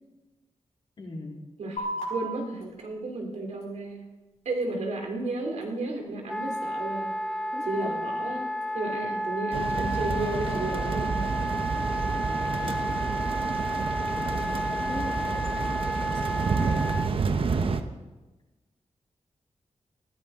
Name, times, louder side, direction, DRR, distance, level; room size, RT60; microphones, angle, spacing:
voice 1, 1.0-1.4 7.5-8.0 12.6-12.8 13.7-16.8, left 2 dB, 45° left, -2 dB, 3.2 m, -41 dB
voice 2, 1.6-4.0 4.4-7.1 7.6-11.2 11.5-11.6, right 2 dB, 80° right, 1 dB, 3.2 m, -33 dB
sound 1, 1.8-8.8, right 1 dB, 85° left, 5.4 m, -42 dB
Wind instrument woodwind instrument, 6.3-17.1, equal, 5° left, 0.4 m, -31 dB
sound 2, 9.5-17.8, right 4 dB, 55° right, 0.9 m, -29 dB
19.0 x 15.5 x 3.7 m, 1.2 s
wide cardioid pair, 165°, 11 cm